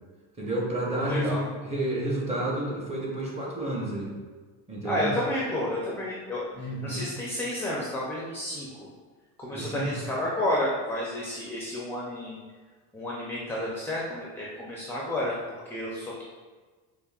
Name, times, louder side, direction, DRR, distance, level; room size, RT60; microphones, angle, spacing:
voice 1, 0.4-4.1 4.7-5.1 6.5-7.0 9.5-10.0, right 1 dB, 15° right, -4 dB, 0.9 m, -30 dB
voice 2, 0.9-1.4 4.8-8.9 9.4-12.4 12.9-16.2, left 1 dB, 5° left, -5 dB, 0.5 m, -31 dB
5.0 x 2.6 x 2.4 m, 1.4 s
cardioid pair, 115°, 38 cm